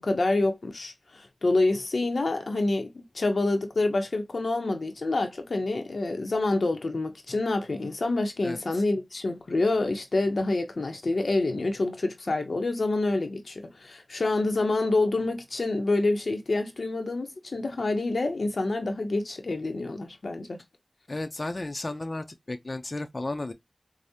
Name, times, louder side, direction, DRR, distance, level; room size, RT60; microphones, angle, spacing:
voice 1, 0.0-20.6, left 2 dB, 90° left, 0.7 m, -27 dB
voice 2, 21.1-23.5, left 2 dB, 55° left, 0.4 m, -33 dB
4.7 x 2.0 x 2.7 m
wide cardioid pair, 45°, 0 cm